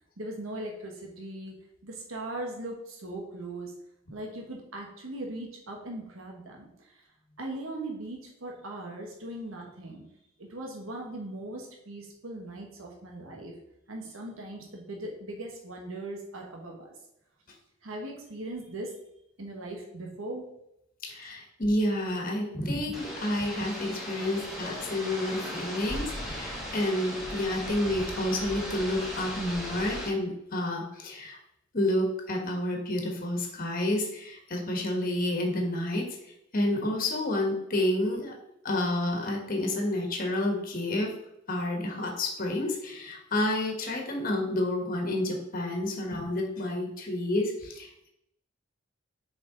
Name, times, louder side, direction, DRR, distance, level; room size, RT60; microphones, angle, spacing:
voice 1, 0.2-3.7 4.1-7.0 7.4-10.1 10.4-13.6 13.9-16.9 17.8-19.0 19.4-20.5, right 1 dB, 90° right, 0 dB, 1.3 m, -39 dB
voice 2, 21.0-31.4 31.7-36.1 36.5-38.3 38.6-41.1 41.5-48.1, left 1 dB, 45° left, 1 dB, 1.5 m, -29 dB
sound 1, 22.9-30.1, equal, ahead, 1.8 m, -37 dB
6.7 x 5.1 x 3.9 m, 0.80 s
head